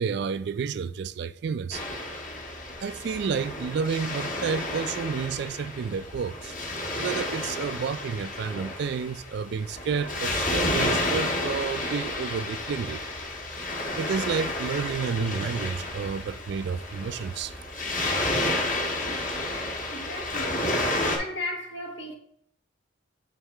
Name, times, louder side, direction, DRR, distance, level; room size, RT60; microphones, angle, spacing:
voice 1, 0.0-1.8 2.8-6.5 7.0-13.0 13.9-17.8, right 6 dB, 55° right, 0.3 m, -30 dB
Waves surf, 1.7-21.2, left 2 dB, 45° left, 1.3 m, -31 dB
voice 2, 19.9-20.7 21.2-22.1, left 1 dB, 75° left, 1.1 m, -35 dB
7.3 x 4.0 x 3.4 m
head